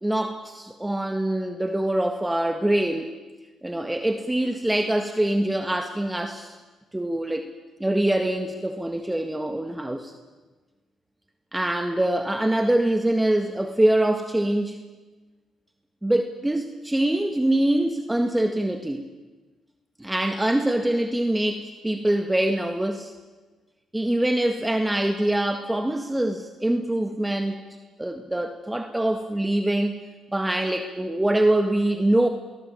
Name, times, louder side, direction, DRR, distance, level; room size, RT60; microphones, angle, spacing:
voice 1, 0.0-3.1 3.6-6.6 6.9-7.5 7.8-10.1 11.5-14.8 16.0-19.0 20.0-23.1 23.9-27.6 28.0-30.0 30.3-32.3, right 1 dB, 10° right, 6 dB, 1.8 m, -24 dB
22.5 x 19.0 x 8.5 m, 1.2 s
cardioid pair, 90°, 0 cm